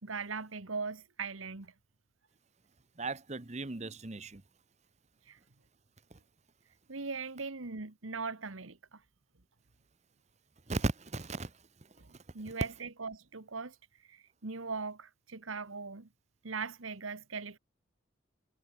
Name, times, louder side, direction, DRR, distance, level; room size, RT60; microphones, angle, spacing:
voice 1, 0.0-1.7 5.3-5.4 6.9-9.0 12.0-13.8 14.1-16.1 16.4-17.6, right 4 dB, 90° right, 1.5 m, -40 dB
voice 2, 3.0-4.4 10.7-11.5, right 2 dB, 35° right, 1.0 m, -36 dB
head